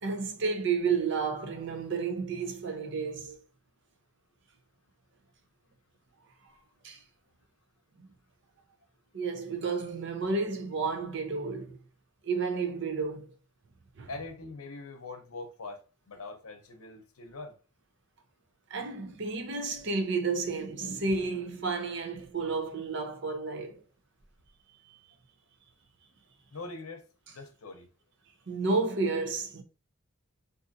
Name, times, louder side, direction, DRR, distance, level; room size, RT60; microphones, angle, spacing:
voice 1, 0.0-3.4 6.8-7.0 9.1-11.8 12.2-13.3 14.0-14.1 18.7-23.8 24.9-25.0 28.5-29.6, right 4 dB, 55° right, 0.6 m, -31 dB
voice 2, 14.1-15.8 16.1-17.6 26.5-27.9, left 3 dB, 80° left, 0.7 m, -43 dB
3.7 x 2.6 x 2.6 m
head